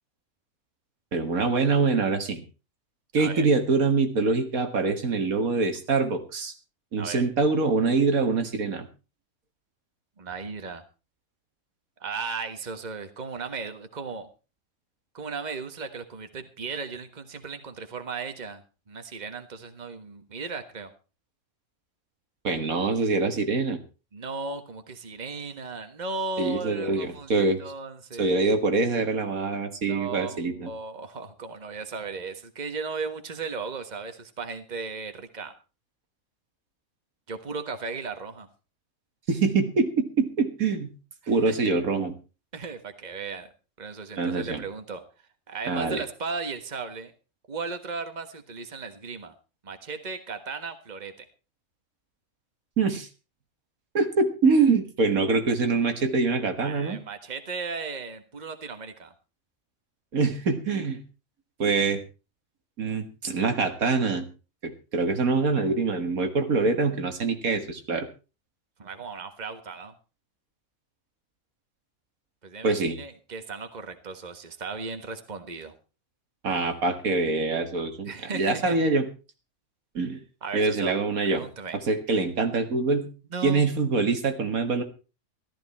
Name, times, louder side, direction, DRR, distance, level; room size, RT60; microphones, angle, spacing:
voice 1, 1.1-2.4 3.1-6.5 6.9-8.9 22.4-23.8 26.4-27.6 28.2-30.7 39.3-40.9 41.3-42.2 44.2-44.6 45.7-46.0 52.8-53.1 53.9-57.0 60.1-61.0 61.6-62.0 62.8-64.3 64.6-68.1 72.6-73.0 76.4-79.1 79.9-80.2 80.5-81.4 81.9-83.1 83.4-84.8, right 4 dB, 80° right, 7 dB, 2.2 m, -24 dB
voice 2, 10.2-10.8 12.0-14.3 15.1-18.6 18.9-20.9 24.1-28.6 29.9-35.5 37.3-38.5 41.2-41.6 42.5-43.5 43.8-45.0 45.5-47.1 47.5-49.3 49.6-51.2 56.6-59.1 68.8-69.9 72.4-75.7 78.0-78.8 80.4-80.9 81.3-81.8 83.3-83.7, right 4 dB, 30° right, 8 dB, 1.6 m, -36 dB
14.0 x 14.0 x 4.3 m, 0.33 s
omnidirectional pair, 1.5 m